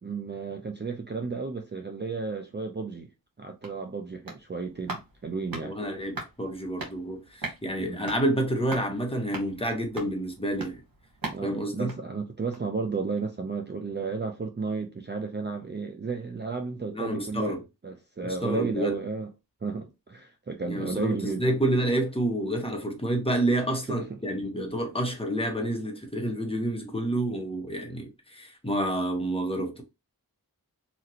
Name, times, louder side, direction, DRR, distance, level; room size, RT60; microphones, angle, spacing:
voice 1, 0.0-3.1 3.4-5.7 7.8-8.0 11.3-19.3 19.6-21.4 23.9-24.2, right 4 dB, 30° right, 0.4 m, -33 dB
sound 1, 3.2-12.8 13.1-13.2, right 3 dB, 65° right, 1.3 m, -42 dB
voice 2, 5.6-10.8 11.4-11.9 16.9-17.6 18.2-19.0 20.7-29.8, right 1 dB, 15° left, 0.9 m, -29 dB
2.9 x 2.5 x 2.8 m
wide cardioid pair, 45°, 37 cm